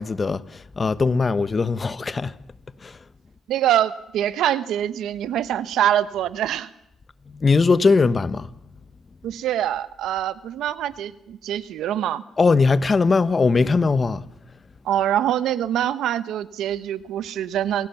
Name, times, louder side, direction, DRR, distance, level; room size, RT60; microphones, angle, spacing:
voice 1, 0.0-2.3 2.8-3.0 7.3-8.5 12.4-14.2, left 4 dB, 30° left, 1.1 m, -20 dB
voice 2, 3.5-6.7 9.2-12.2 14.8-17.9, right 11 dB, 80° right, 1.1 m, -24 dB
28.5 x 17.0 x 7.2 m
cardioid pair, 90°, 0 cm